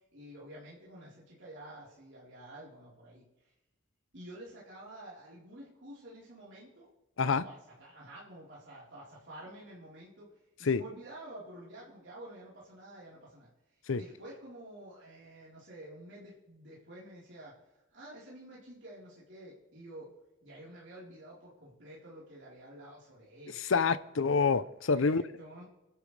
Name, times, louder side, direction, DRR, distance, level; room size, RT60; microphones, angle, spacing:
voice 1, 0.1-3.3 4.1-6.9 7.2-10.3 10.6-13.5 13.9-17.6 17.9-20.1 20.4-23.7 24.9-25.6, right 1 dB, 65° right, -7 dB, 4.1 m, -49 dB
voice 2, 23.7-25.2, left 5 dB, 80° left, 15 dB, 0.6 m, -27 dB
28.5 x 11.5 x 3.4 m, 1.0 s
head